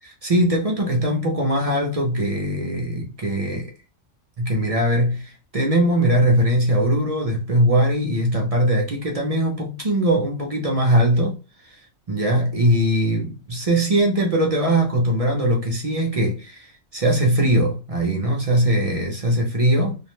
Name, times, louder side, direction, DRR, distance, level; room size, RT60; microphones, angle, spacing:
voice 1, 0.0-3.7 4.4-20.0, right 1 dB, 50° right, 0.4 m, -21 dB
2.5 x 2.1 x 2.9 m
omnidirectional pair, 1.3 m